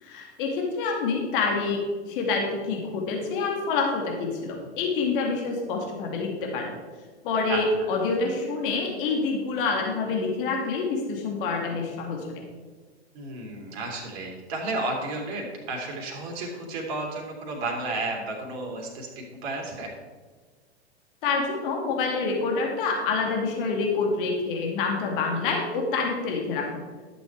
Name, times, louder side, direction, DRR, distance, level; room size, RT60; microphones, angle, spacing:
voice 1, 0.0-1.8 2.1-6.7 7.2-12.4 21.2-26.7, left 4 dB, 50° left, 1 dB, 2.3 m, -27 dB
voice 2, 13.1-19.9, right 2 dB, 45° right, -1 dB, 2.7 m, -32 dB
11.5 x 7.0 x 4.6 m, 1.5 s
hypercardioid pair, 110°, 33 cm